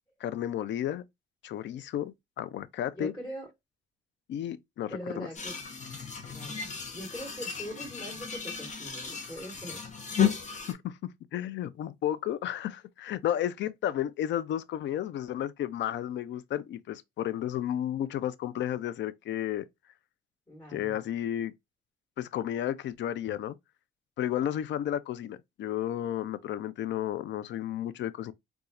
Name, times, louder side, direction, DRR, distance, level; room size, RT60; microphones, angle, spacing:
voice 1, 0.2-1.0 1.4-3.1 4.3-4.9 5.2-5.3 10.7-11.0 11.3-19.7 20.7-21.5 22.2-23.6 24.2-28.3, left 11 dB, 65° left, 0.4 m, -32 dB
voice 2, 2.9-3.5 4.9-5.6 6.2-6.6 6.9-9.8 20.5-21.0, equal, 20° left, 2.3 m, -41 dB
sound 1, 5.4-10.7, left 8 dB, 35° left, 1.0 m, -33 dB
4.0 x 2.4 x 2.4 m
cardioid pair, 90°, 20 cm